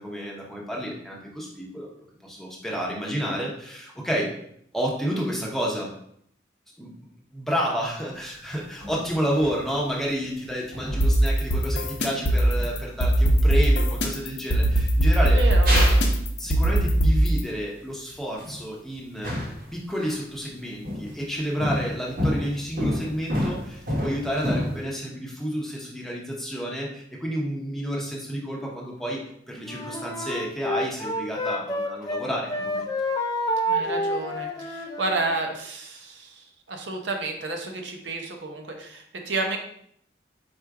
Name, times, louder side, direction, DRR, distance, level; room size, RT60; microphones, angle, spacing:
voice 1, 0.0-1.9 2.2-4.3 4.7-5.9 6.8-6.9 7.3-15.4 16.4-19.3 19.7-29.2 29.5-32.9, equal, ahead, -3 dB, 0.8 m, -30 dB
sound 1, 8.1-8.2 8.8-9.7 10.5-11.1 12.1-12.2 12.5-12.7 13.1-13.5 14.4-14.5 15.0-15.1 15.6-16.1 16.4-16.7 18.1-18.6 19.2-20.2 20.8-21.2 21.6-24.8, equal, 50° right, 1.0 m, -29 dB
sound 2, 10.9-17.4, right 1 dB, 70° left, 0.7 m, -20 dB
voice 2, 15.2-15.8 33.7-39.6, right 2 dB, 90° right, 3 dB, 0.7 m, -31 dB
Wind instrument woodwind instrument, 29.6-32.2 32.5-35.3, equal, 20° left, 0.3 m, -28 dB
4.4 x 2.4 x 4.6 m, 0.68 s
head